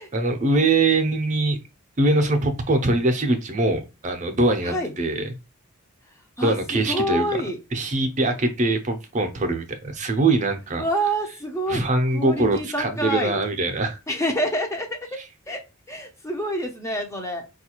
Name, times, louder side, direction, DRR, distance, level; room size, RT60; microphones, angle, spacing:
voice 1, 0.1-1.6 2.0-5.3 6.4-7.4 7.7-10.8 11.7-14.0 15.2-15.3, right 2 dB, 35° right, 0.6 m, -22 dB
voice 2, 6.4-7.6 10.8-11.8 12.1-13.4 14.1-15.0 15.5-15.6 15.9-17.5, right 1 dB, 15° left, 0.5 m, -27 dB
4.6 x 2.3 x 2.9 m
head